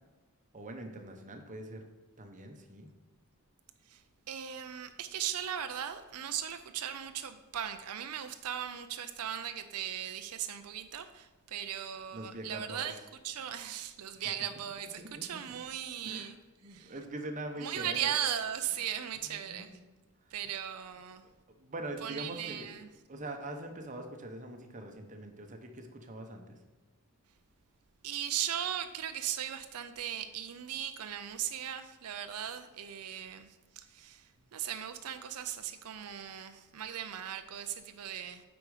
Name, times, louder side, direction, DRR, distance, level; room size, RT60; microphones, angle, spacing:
voice 1, 0.5-1.9 2.2-2.9 12.1-12.9 15.0-15.2 16.0-16.3 16.6-18.1 19.3-19.8 21.6-22.7 23.1-26.6, right 1 dB, 35° right, 4 dB, 0.9 m, -43 dB
voice 2, 4.3-13.0 13.2-16.4 16.7-16.9 17.6-19.7 20.3-21.2 22.0-22.9 28.0-33.5 33.8-34.2 34.5-38.4, right 10 dB, 85° right, 9 dB, 0.5 m, -38 dB
8.4 x 5.1 x 4.9 m, 1.2 s
head